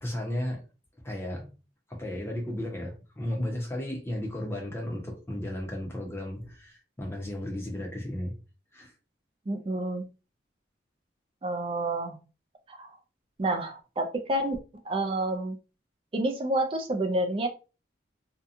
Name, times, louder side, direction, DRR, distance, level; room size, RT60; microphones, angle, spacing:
voice 1, 0.0-0.6 1.0-1.6 1.9-8.3 8.7-8.9, left 1 dB, 15° left, 0 dB, 0.7 m, -34 dB
voice 2, 9.5-10.1 11.4-12.2 12.7-13.0 13.4-14.6 14.9-15.6 16.1-17.5, right 1 dB, 30° right, 6 dB, 0.4 m, -29 dB
2.7 x 2.3 x 2.5 m, 0.32 s
head